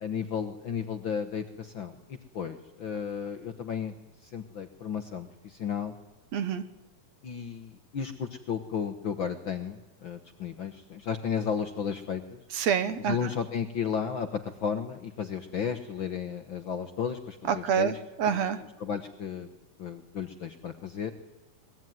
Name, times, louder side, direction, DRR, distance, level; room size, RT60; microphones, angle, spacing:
voice 1, 0.0-3.9 4.2-5.9 7.2-12.4 13.0-18.0 18.3-19.5 19.8-21.1, left 7 dB, 55° left, 8 dB, 1.5 m, -34 dB
voice 2, 6.3-6.6 12.5-13.2 17.5-18.6, right 8 dB, 65° right, 11 dB, 2.3 m, -27 dB
23.0 x 21.5 x 9.4 m, 1.0 s
omnidirectional pair, 3.5 m